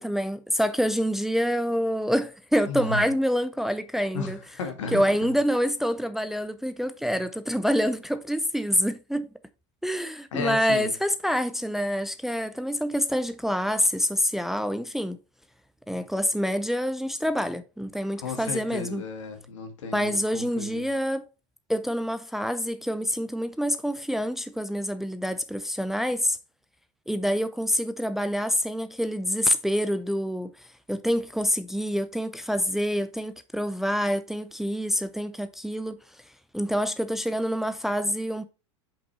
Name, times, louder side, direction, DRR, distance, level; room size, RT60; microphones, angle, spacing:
voice 1, 0.0-4.4 4.9-9.3 9.8-15.2 15.9-19.0 19.9-21.2 21.7-26.4 27.1-36.2 36.5-38.4, equal, ahead, 0.5 m, -27 dB
voice 2, 2.7-3.0 4.1-5.2 10.3-10.9 18.2-20.9, left 4 dB, 80° left, 1.9 m, -34 dB
5.5 x 5.3 x 4.3 m
hypercardioid pair, 105°, 16 cm